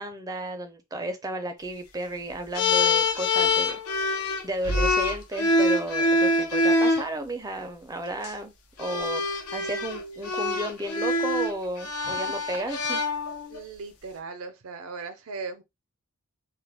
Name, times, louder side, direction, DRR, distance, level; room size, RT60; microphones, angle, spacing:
voice 1, 0.0-8.5 8.8-13.0, right 1 dB, 15° right, 0.4 m, -33 dB
sound 1, 2.5-7.1 8.1-8.3 8.8-13.6, left 2 dB, 85° left, 0.6 m, -25 dB
voice 2, 13.5-15.6, right 4 dB, 70° right, 0.5 m, -38 dB
2.3 x 2.2 x 3.3 m
head